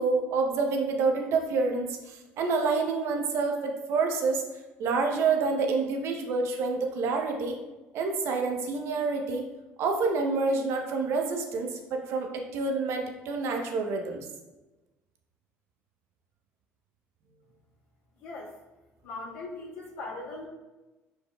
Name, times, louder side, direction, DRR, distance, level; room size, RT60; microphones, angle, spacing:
voice 1, 0.0-4.4 4.8-7.6 7.9-9.4 9.8-14.3, right 4 dB, 65° right, 3 dB, 0.8 m, -28 dB
voice 2, 18.2-18.5 19.0-20.5, left 2 dB, 75° left, -5 dB, 1.6 m, -39 dB
5.2 x 4.5 x 2.3 m, 1.1 s
supercardioid pair, 85°, 5 cm